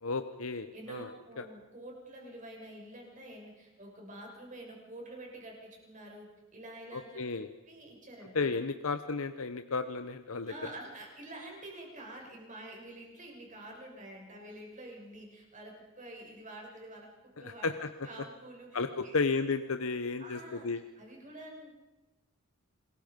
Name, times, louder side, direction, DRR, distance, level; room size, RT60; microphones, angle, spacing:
voice 1, 0.0-1.1 1.4-1.5 6.9-7.5 8.3-10.5 17.4-17.9 18.7-20.8, left 4 dB, 75° left, 9 dB, 0.9 m, -33 dB
voice 2, 0.7-6.3 6.5-7.2 7.7-8.4 10.5-17.1 17.4-17.7 18.0-19.2 20.2-20.7 21.0-21.7, right 1 dB, 35° right, 0 dB, 6.4 m, -47 dB
28.0 x 20.5 x 5.3 m, 1.1 s
head